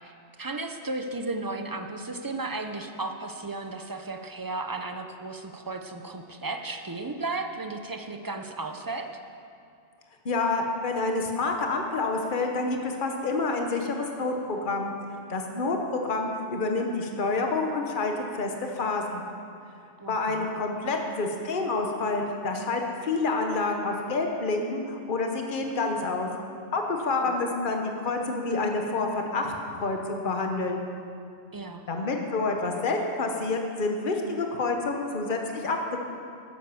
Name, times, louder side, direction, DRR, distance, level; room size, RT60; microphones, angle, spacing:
voice 1, 0.0-9.1 20.0-20.5 27.0-27.4 31.5-31.8, right 3 dB, 20° right, 5 dB, 0.7 m, -35 dB
voice 2, 10.2-14.9 15.3-19.2 20.1-26.3 26.7-30.8 31.9-36.0, left 3 dB, 45° left, 2 dB, 1.3 m, -28 dB
12.5 x 9.3 x 7.0 m, 2.4 s
omnidirectional pair, 1.2 m